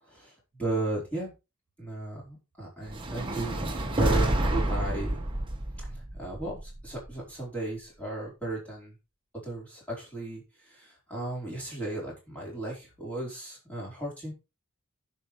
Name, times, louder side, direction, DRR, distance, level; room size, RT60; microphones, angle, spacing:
voice 1, 0.6-1.3 1.8-3.6 3.9-5.2 6.2-8.9 9.4-10.4 10.7-14.3, right 2 dB, 5° left, -5 dB, 4.5 m, -35 dB
sound 1, 2.9-7.1, right 1 dB, 25° right, 1.3 m, -29 dB
16.5 x 5.6 x 3.3 m, 0.27 s
head